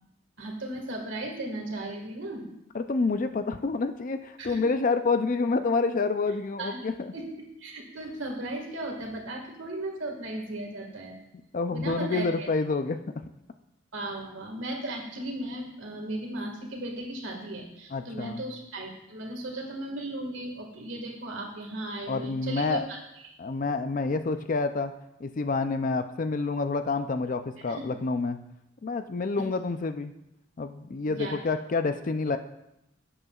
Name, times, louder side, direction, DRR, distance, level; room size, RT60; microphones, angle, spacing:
voice 1, 0.4-2.5 4.4-4.6 6.6-6.8 7.1-7.2 7.6-11.2 11.7-12.5 13.9-23.0 23.2-23.3 27.6-27.8 31.1-31.4, right 1 dB, 65° right, 1 dB, 1.8 m, -36 dB
voice 2, 2.7-7.1 11.5-13.0 17.9-18.4 22.1-22.8 23.4-24.9 25.2-28.4 28.8-30.1 30.6-32.4, left 3 dB, 40° left, 9 dB, 0.4 m, -28 dB
12.0 x 8.0 x 2.4 m, 0.84 s
head